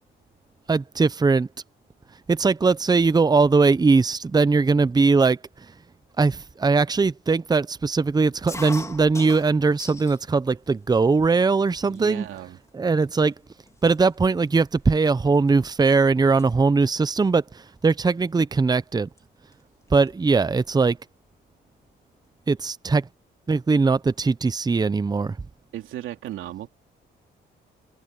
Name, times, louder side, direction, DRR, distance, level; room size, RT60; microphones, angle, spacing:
voice 1, 0.7-1.5 2.3-5.4 6.2-12.3 12.7-13.3 13.8-19.1 19.9-21.0 22.5-23.1 23.5-25.4, right 4 dB, 20° right, 0.7 m, -20 dB
sound 1, 8.5-10.2 10.6-11.3 12.0-12.1 12.3-12.7 13.3-13.4 13.7-15.9 16.2-16.5 17.8-18.1 19.2-19.3 19.5-19.6 19.9-20.8, left 2 dB, 15° left, 3.4 m, -40 dB
voice 2, 11.8-12.6 25.7-26.7, right 13 dB, 85° right, 3.0 m, -35 dB
cardioid pair, 90°, 20 cm